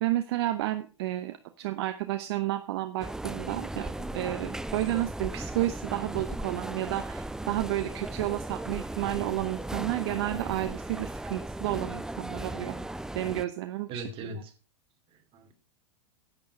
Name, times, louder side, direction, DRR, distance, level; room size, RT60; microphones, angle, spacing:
voice 1, 0.0-12.8 13.1-14.3, right 15 dB, 60° right, 10 dB, 0.8 m, -31 dB
sound 1, 3.0-13.5, right 1 dB, 5° right, 0.5 m, -37 dB
voice 2, 13.9-14.5 15.1-15.5, right 2 dB, 35° right, 5 dB, 2.7 m, -42 dB
10.5 x 9.0 x 4.9 m, 0.35 s
hypercardioid pair, 95°, 15 cm